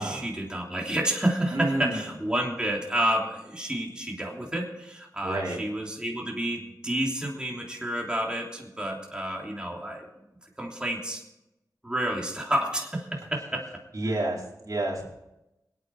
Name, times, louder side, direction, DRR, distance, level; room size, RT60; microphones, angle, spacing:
voice 1, 0.0-10.1 10.6-11.2 11.8-13.6, right 1 dB, 10° right, -1 dB, 3.3 m, -30 dB
voice 2, 1.5-2.1 5.2-5.6 13.9-15.0, right 1 dB, 50° right, -4 dB, 4.9 m, -29 dB
24.0 x 9.0 x 4.9 m, 0.92 s
wide cardioid pair, 75°, 7 cm